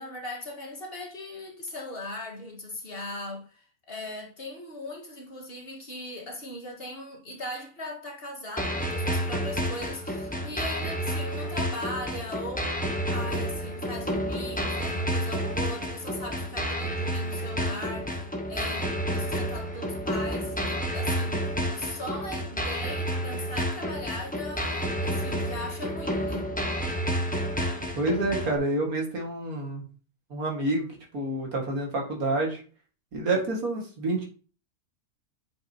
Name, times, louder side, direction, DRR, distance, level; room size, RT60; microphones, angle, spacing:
voice 1, 0.0-26.5, left 1 dB, 40° left, 1.8 m, -39 dB
sound 1, 8.6-28.6, equal, 5° left, 0.9 m, -30 dB
voice 2, 28.0-29.8 30.3-30.9 31.1-32.6 33.1-34.2, right 2 dB, 75° right, 2.4 m, -28 dB
8.6 x 5.2 x 2.9 m
omnidirectional pair, 1.6 m